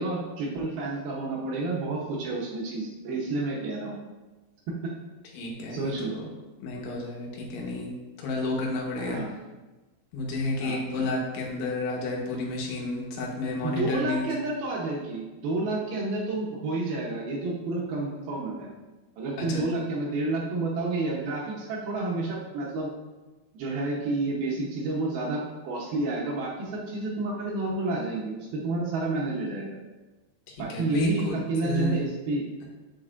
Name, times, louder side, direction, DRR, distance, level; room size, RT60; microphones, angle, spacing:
voice 1, 0.0-4.0 4.7-4.9 5.7-6.2 9.0-9.3 10.6-10.8 13.6-18.7 19.2-22.9 23.5-29.8 30.6-32.4, right 2 dB, 70° right, -3 dB, 2.4 m, -30 dB
voice 2, 5.3-6.3 6.6-7.9 8.2-9.2 10.1-14.3 19.4-19.7 30.7-32.1, left 2 dB, 75° left, -2 dB, 3.6 m, -31 dB
7.7 x 7.3 x 2.6 m, 1.1 s
omnidirectional pair, 5.5 m